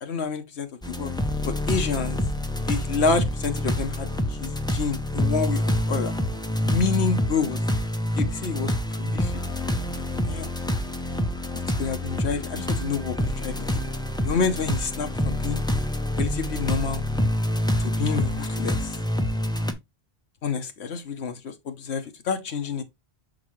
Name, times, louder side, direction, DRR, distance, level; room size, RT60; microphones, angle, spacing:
voice 1, 0.0-1.1 1.4-2.2 2.7-6.1 6.6-7.6 8.2-9.3 9.8-10.5 11.5-13.8 14.2-15.6 16.2-17.0 17.8-18.9 20.4-22.8, left 5 dB, 80° left, 1.1 m, -28 dB
sound 1, 0.8-19.7, left 1 dB, 5° left, 0.5 m, -27 dB
6.4 x 4.7 x 3.1 m
omnidirectional pair, 1.1 m